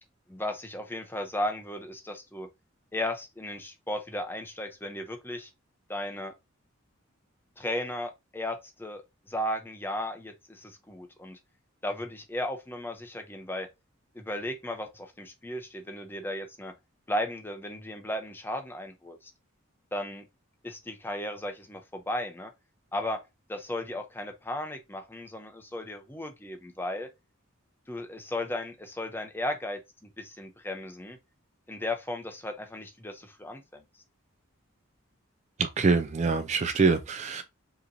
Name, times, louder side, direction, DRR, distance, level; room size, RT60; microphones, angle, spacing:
voice 1, 0.3-2.5 2.9-5.5 5.9-6.3 7.6-11.4 11.8-13.7 14.1-16.7 17.1-19.3 19.9-20.2 20.6-22.5 22.9-23.2 23.5-27.1 27.9-29.8 30.2-31.2 31.7-33.8, left 1 dB, 10° left, 0.6 m, -35 dB
voice 2, 35.6-37.4, right 4 dB, 35° right, 0.3 m, -25 dB
5.1 x 2.9 x 2.6 m
head